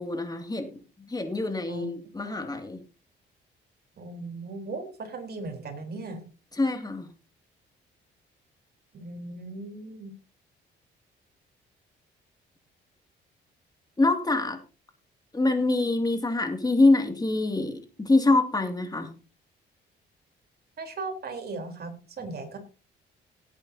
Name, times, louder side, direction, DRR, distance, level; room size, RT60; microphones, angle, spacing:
voice 1, 0.0-2.8 6.5-7.1 14.0-14.6 15.3-19.1, left 2 dB, 20° left, 5 dB, 2.5 m, -25 dB
voice 2, 4.0-6.2 8.9-10.1 20.8-21.9 22.2-22.6, right 3 dB, 55° right, 4 dB, 3.9 m, -37 dB
18.0 x 8.8 x 2.8 m, 0.34 s
cardioid pair, 90°, 20 cm